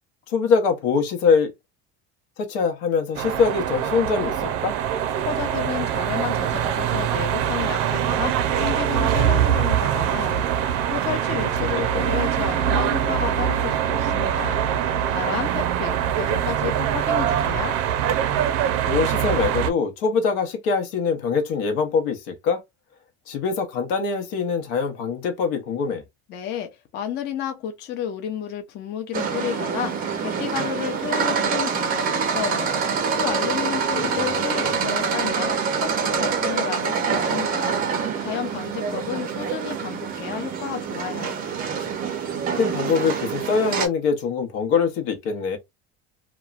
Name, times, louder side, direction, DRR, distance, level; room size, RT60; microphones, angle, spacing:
voice 1, 0.3-1.5 2.4-4.7 11.9-12.2 18.9-22.6 23.3-26.0 34.0-34.8 42.6-45.6, left 5 dB, 80° left, 0.8 m, -23 dB
sound 1, 3.1-19.7, right 10 dB, 80° right, 0.5 m, -23 dB
voice 2, 5.2-10.5 10.9-14.6 15.1-17.8 26.3-32.7 33.1-37.8 38.2-41.4, left 9 dB, 35° left, 0.5 m, -31 dB
sound 2, 29.1-43.9, right 6 dB, 30° right, 0.5 m, -26 dB
2.9 x 2.1 x 2.4 m
cardioid pair, 170°, 30 cm